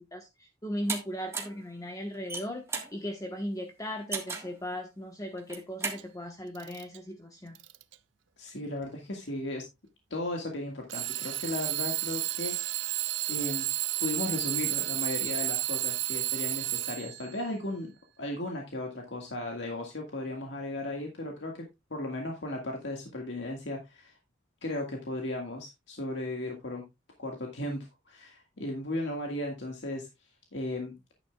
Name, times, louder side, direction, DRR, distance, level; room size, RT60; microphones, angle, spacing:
voice 1, 0.0-7.6, equal, 20° left, 3 dB, 1.2 m, -37 dB
sound 1, 0.9-1.0 1.3-1.6 2.1-2.9 4.1-4.5 5.4-6.0, right 4 dB, 15° right, 1.6 m, -34 dB
Alarm / Clock, 5.9-6.0 6.5-7.0 7.5-7.9 8.8-8.9 10.9-17.3, right 18 dB, 85° right, 0.5 m, -32 dB
voice 2, 8.4-9.6 10.1-12.8 13.3-13.7 14.0-17.9 18.2-21.7 21.9-24.2 24.6-26.8 27.2-30.1 30.5-30.9, left 1 dB, 75° left, 1 dB, 1.9 m, -36 dB
11.5 x 9.6 x 2.4 m, 0.22 s
head